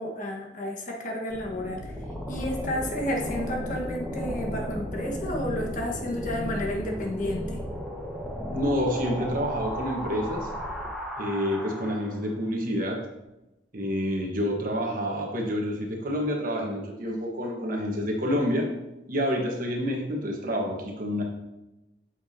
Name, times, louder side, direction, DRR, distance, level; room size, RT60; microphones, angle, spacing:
voice 1, 0.0-2.0 2.2-7.6, left 1 dB, 45° left, -1 dB, 1.5 m, -31 dB
sound 1, 1.3-12.3, equal, ahead, 1.4 m, -34 dB
voice 2, 8.5-10.5 11.2-13.0 13.7-18.7 19.1-21.2, equal, 50° right, 1 dB, 1.3 m, -28 dB
8.1 x 7.1 x 2.8 m, 0.96 s
head